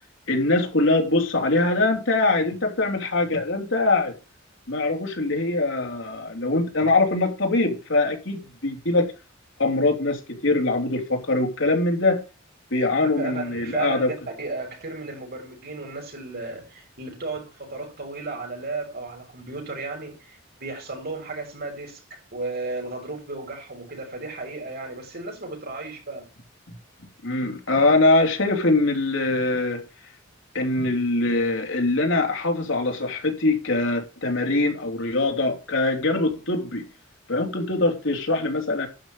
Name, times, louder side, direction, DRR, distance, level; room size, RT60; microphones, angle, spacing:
voice 1, 0.3-4.1 4.7-9.1 9.6-12.2 12.7-14.1 27.2-29.8 30.5-36.8 37.3-38.9, left 2 dB, 65° left, 3.3 m, -23 dB
voice 2, 13.2-26.3, right 3 dB, 50° right, 6.1 m, -34 dB
12.0 x 5.8 x 7.0 m
head